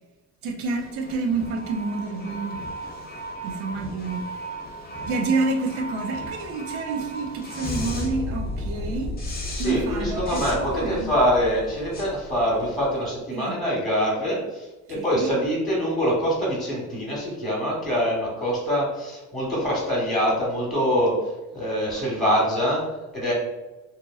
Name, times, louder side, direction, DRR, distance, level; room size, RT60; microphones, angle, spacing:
voice 1, 0.4-2.6 3.4-4.3 5.0-9.1 9.6-11.1 13.3-13.6 14.9-15.4, right 3 dB, 75° right, 4 dB, 0.6 m, -28 dB
sound 1, 0.6-13.0, equal, 25° left, 0.7 m, -34 dB
voice 2, 9.5-23.3, equal, ahead, -5 dB, 1.1 m, -24 dB
2.8 x 2.5 x 2.3 m, 1.1 s
cardioid pair, 100°, 38 cm